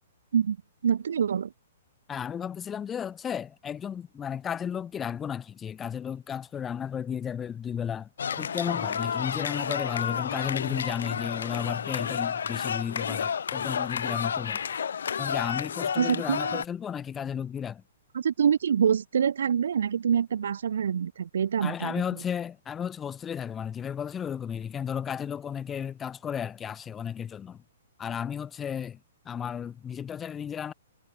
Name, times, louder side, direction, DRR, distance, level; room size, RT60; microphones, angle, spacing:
voice 1, 0.8-1.5 16.0-16.6 18.1-21.9, right 7 dB, 75° right, 2.8 m, -25 dB
voice 2, 2.1-14.7 15.2-17.8 21.6-27.6 28.0-29.0 29.2-30.7, left 8 dB, 10° left, 0.9 m, -34 dB
sound 1, 8.2-16.7, left 7 dB, 80° left, 1.7 m, -31 dB
hypercardioid pair, 165°, 0 cm